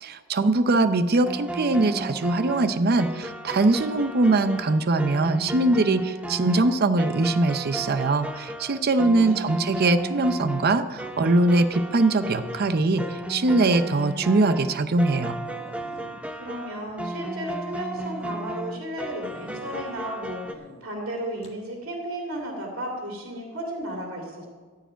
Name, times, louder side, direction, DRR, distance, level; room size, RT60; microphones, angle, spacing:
voice 1, 0.0-15.4, right 2 dB, 50° right, 11 dB, 0.6 m, -22 dB
sound 1, 1.2-20.5, right 1 dB, 5° right, 0.5 m, -35 dB
voice 2, 9.0-9.6 16.4-24.5, right 1 dB, 75° right, 0 dB, 2.3 m, -34 dB
sound 2, 11.3-11.7 12.9-13.7 14.2-14.3 14.7-14.8 15.1-15.2 15.4-17.5 17.9-18.3 19.2-20.0 20.4-20.8 21.4-21.6, left 2 dB, 30° left, 1.5 m, -47 dB
14.5 x 4.8 x 9.0 m, 1.5 s
head